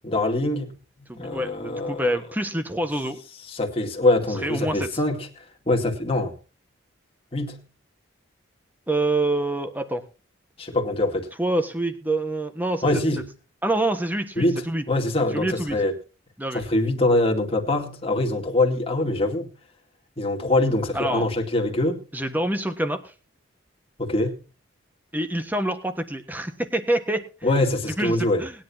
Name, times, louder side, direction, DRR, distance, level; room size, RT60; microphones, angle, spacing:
voice 1, 0.0-0.7 1.2-2.1 3.5-6.3 7.3-7.6 10.6-11.3 12.8-13.2 14.4-15.9 16.5-19.5 20.2-22.0 24.0-24.4 27.4-28.4, left 2 dB, 30° left, 2.3 m, -24 dB
voice 2, 1.1-3.2 4.4-4.9 8.9-10.0 11.4-13.0 13.6-14.8 15.3-15.8 16.4-16.6 20.9-21.3 22.1-23.0 25.1-27.3 28.0-28.6, right 1 dB, 10° right, 1.5 m, -26 dB
20.0 x 10.5 x 2.9 m
head